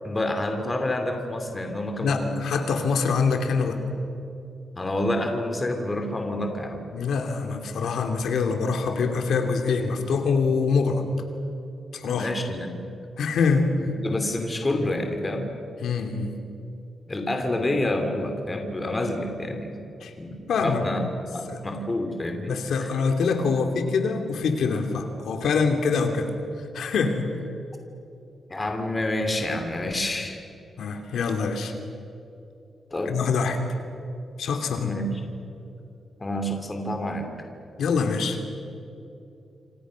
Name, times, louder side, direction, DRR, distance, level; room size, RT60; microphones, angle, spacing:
voice 1, 0.0-2.3 4.8-6.9 12.1-12.8 14.0-15.5 17.1-19.8 20.2-21.0 21.3-22.9 28.5-30.4 32.9-33.2 34.8-35.1 36.2-37.3, left 1 dB, 20° left, 5 dB, 2.8 m, -28 dB
voice 2, 2.0-3.8 6.9-11.0 11.9-12.3 13.2-13.7 15.8-16.3 20.0-20.1 20.5-20.8 21.5-21.6 22.5-27.3 30.8-31.7 33.0-33.6 34.4-35.0 37.8-38.4, left 5 dB, 85° left, 5 dB, 2.9 m, -25 dB
27.5 x 27.0 x 6.4 m, 2.7 s
wide cardioid pair, 175°, 0 cm